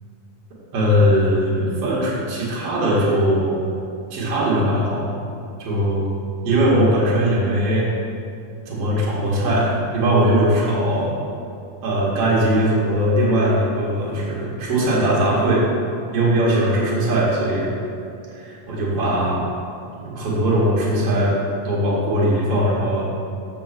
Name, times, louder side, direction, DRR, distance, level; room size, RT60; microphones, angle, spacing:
voice 1, 0.7-3.6 4.1-5.1 5.6-6.1 6.4-7.9 8.7-11.1 11.8-15.6 16.1-17.7 18.3-19.4 20.0-21.4 21.6-23.1, equal, 55° right, -6 dB, 2.8 m, -20 dB
7.6 x 6.3 x 6.0 m, 2.6 s
omnidirectional pair, 3.5 m